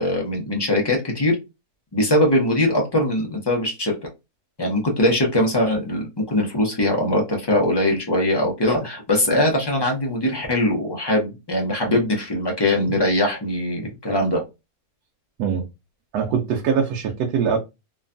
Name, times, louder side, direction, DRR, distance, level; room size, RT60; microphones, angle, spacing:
voice 1, 0.0-1.4 1.9-3.9 4.6-14.4, left 1 dB, 35° left, 0.4 m, -21 dB
voice 2, 16.1-17.6, right 6 dB, 90° right, 1.1 m, -22 dB
3.0 x 2.2 x 2.5 m
omnidirectional pair, 1.6 m